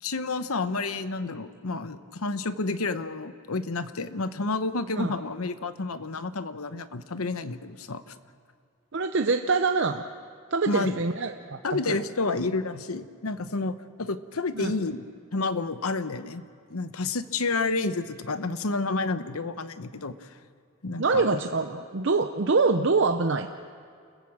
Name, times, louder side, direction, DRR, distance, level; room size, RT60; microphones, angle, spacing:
voice 1, 0.0-8.1 10.7-10.9 11.6-15.0 15.3-16.4 16.7-20.3 20.8-21.2, left 3 dB, 80° left, 11 dB, 0.9 m, -30 dB
voice 2, 8.9-10.0 10.5-12.0 14.5-14.7 21.0-23.5, right 4 dB, 55° right, 6 dB, 0.7 m, -25 dB
29.0 x 15.0 x 7.4 m, 2.3 s
head